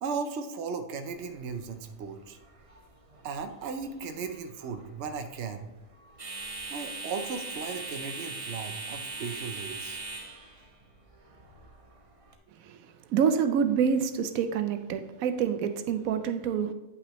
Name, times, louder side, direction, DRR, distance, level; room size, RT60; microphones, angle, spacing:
voice 1, 0.0-2.4 3.2-5.7 6.7-10.0, right 5 dB, 60° right, 7 dB, 0.9 m, -36 dB
sound 1, 1.0-12.4, right 3 dB, 35° right, 0.7 m, -42 dB
voice 2, 13.1-16.7, right 7 dB, 90° right, 8 dB, 1.0 m, -27 dB
9.5 x 5.8 x 3.0 m, 1.0 s
omnidirectional pair, 1.4 m